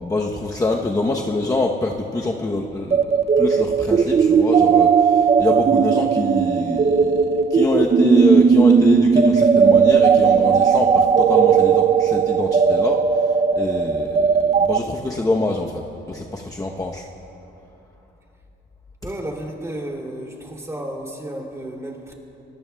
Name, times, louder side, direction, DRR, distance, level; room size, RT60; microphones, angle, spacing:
voice 1, 0.0-7.1 7.5-13.0 13.5-15.8 16.1-17.0, left 2 dB, 15° left, 0 dB, 0.9 m, -25 dB
sound 1, 2.9-14.8, right 6 dB, 30° right, 0.4 m, -16 dB
voice 2, 19.0-22.1, right 1 dB, 15° right, 0 dB, 2.8 m, -32 dB
25.0 x 19.0 x 2.3 m, 2.8 s
cardioid pair, 90°, 20 cm